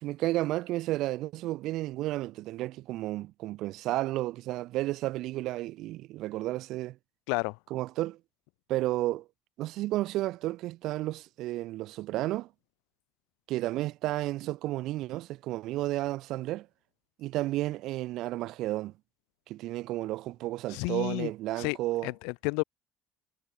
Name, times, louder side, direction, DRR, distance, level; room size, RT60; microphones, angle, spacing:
voice 1, 0.0-7.0 7.7-8.2 8.7-9.3 9.6-12.5 13.5-16.7 17.2-18.9 19.5-22.1, right 16 dB, 70° right, 2.0 m, -32 dB
voice 2, 7.3-7.6 20.7-21.3 21.6-21.8 22.0-22.6, left 37 dB, 85° left, 3.5 m, -31 dB
supercardioid pair, 95°, 0 cm